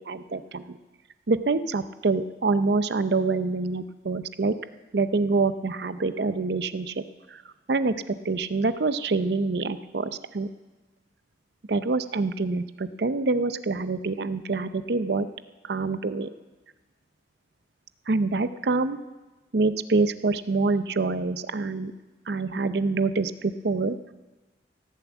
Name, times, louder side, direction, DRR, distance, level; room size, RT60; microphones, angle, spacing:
voice 1, 0.1-0.8 1.3-4.5 4.9-7.0 7.3-7.4 7.7-10.5 11.7-15.3 15.6-16.3 18.1-19.0 19.5-21.9 22.3-24.0, right 3 dB, 60° right, 12 dB, 0.6 m, -26 dB
16.5 x 7.1 x 8.2 m, 1.2 s
head